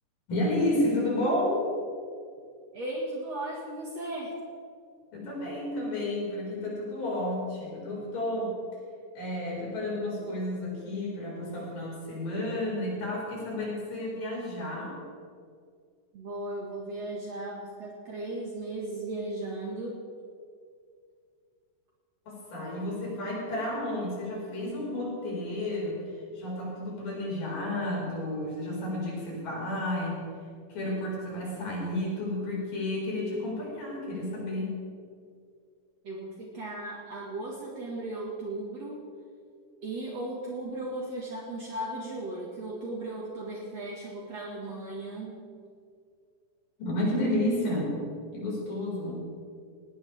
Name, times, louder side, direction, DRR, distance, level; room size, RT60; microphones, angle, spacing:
voice 1, 0.3-1.7 5.1-8.6 9.2-15.0 22.3-30.2 30.7-34.7 46.8-48.0 48.3-49.3, left 1 dB, 80° left, -4 dB, 6.9 m, -31 dB
voice 2, 2.7-4.3 16.1-20.0 36.0-39.0 39.8-45.4, right 2 dB, 55° right, -3 dB, 2.9 m, -36 dB
19.5 x 18.5 x 3.6 m, 2.2 s
omnidirectional pair, 3.8 m